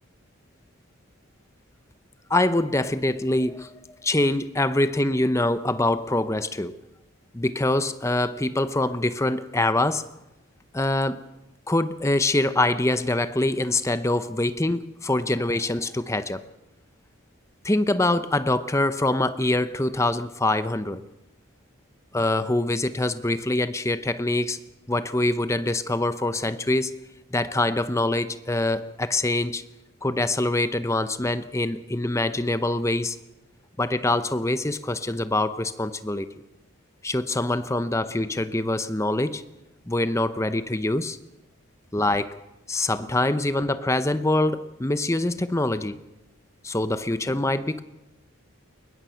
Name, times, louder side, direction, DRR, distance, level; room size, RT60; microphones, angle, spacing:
voice 1, 2.3-3.7 4.0-6.7 7.3-10.1 10.7-11.2 11.7-16.4 17.6-21.0 22.1-24.6 24.9-27.0 27.3-29.6 30.0-33.2 33.8-36.3 37.0-39.4 39.9-41.2 41.9-42.4 42.7-46.0 46.6-47.8, left 2 dB, 15° left, 12 dB, 0.7 m, -24 dB
22.0 x 20.5 x 5.7 m, 0.97 s
head